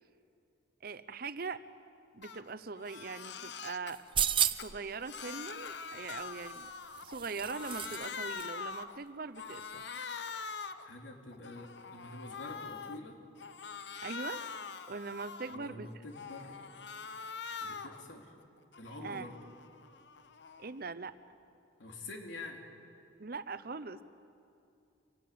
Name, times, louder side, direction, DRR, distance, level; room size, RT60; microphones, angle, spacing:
voice 1, 0.8-1.6 2.1-4.0 4.5-6.7 7.0-9.9 14.0-14.4 14.9-15.9 19.0-19.3 20.6-21.1 23.2-24.0, right 4 dB, 50° right, 13 dB, 0.8 m, -41 dB
Crying sobbing, 2.2-2.4 2.8-3.9 4.4-7.2 7.4-9.0 9.4-10.9 11.3-13.0 13.4-15.7 16.1-18.0 18.4-20.8, left 5 dB, 65° left, 1.0 m, -44 dB
sound 1, 3.9-4.8 6.3-8.1 8.4-8.5, right 9 dB, 25° right, 0.5 m, -33 dB
voice 2, 10.8-13.2 15.4-16.6 17.6-18.3 18.8-19.4 21.8-22.6, left 2 dB, 85° left, 2 dB, 3.3 m, -47 dB
26.0 x 19.5 x 8.6 m, 2.6 s
head